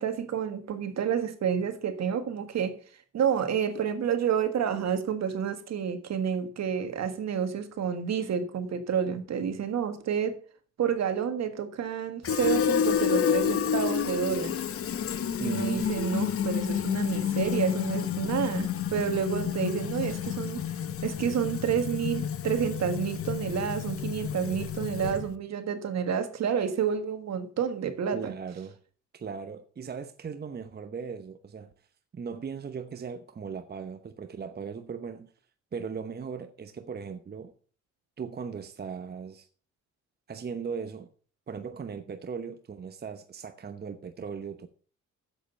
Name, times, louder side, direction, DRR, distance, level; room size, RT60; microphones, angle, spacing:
voice 1, 0.0-2.8 3.1-10.4 10.8-14.6 15.4-20.7 21.0-28.3, right 8 dB, 60° right, 1.7 m, -29 dB
Fill (with liquid), 12.2-25.4, left 8 dB, 50° left, 0.9 m, -30 dB
voice 2, 15.4-15.9 28.1-28.8 29.1-31.7 32.1-35.3 35.7-37.5 38.2-39.5 40.3-41.1 41.5-44.7, right 6 dB, 35° right, 0.9 m, -38 dB
7.8 x 7.7 x 6.9 m
cardioid pair, 90°, 30 cm